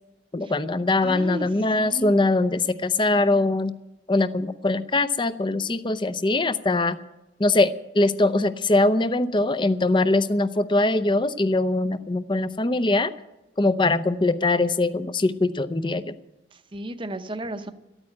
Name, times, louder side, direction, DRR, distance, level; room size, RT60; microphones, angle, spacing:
voice 1, 0.3-3.7 4.1-7.0 7.4-13.1 13.6-16.1, left 2 dB, 25° left, 13 dB, 0.6 m, -22 dB
voice 2, 1.0-1.5 1.8-2.3 16.5-17.7, right 1 dB, 25° right, 9 dB, 0.8 m, -34 dB
13.0 x 9.0 x 9.8 m, 0.98 s
head